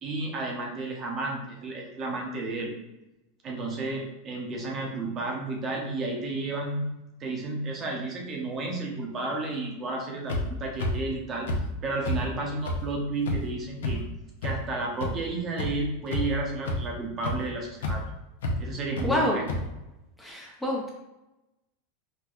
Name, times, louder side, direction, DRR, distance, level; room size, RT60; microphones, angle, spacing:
voice 1, 0.0-2.7 3.4-6.9 7.2-11.5 11.8-14.0 14.4-18.0 18.6-19.5, right 2 dB, 30° right, 0 dB, 0.7 m, -32 dB
sound 1, 10.3-10.4 10.8-10.9 11.5-11.6 12.0-12.2 12.7-12.8 13.3-13.4 13.8-13.9 14.4-14.5 15.0-15.1 15.6-15.7 16.1-16.4 16.7-16.8 17.2-17.3 17.8-17.9 18.4-18.5 19.0-19.1 19.5-19.6, left 2 dB, 90° left, 0.6 m, -28 dB
voice 2, 19.0-19.4 20.2-20.9, left 1 dB, 5° left, -3 dB, 0.5 m, -27 dB
4.2 x 2.2 x 2.4 m, 0.96 s
supercardioid pair, 130°, 0 cm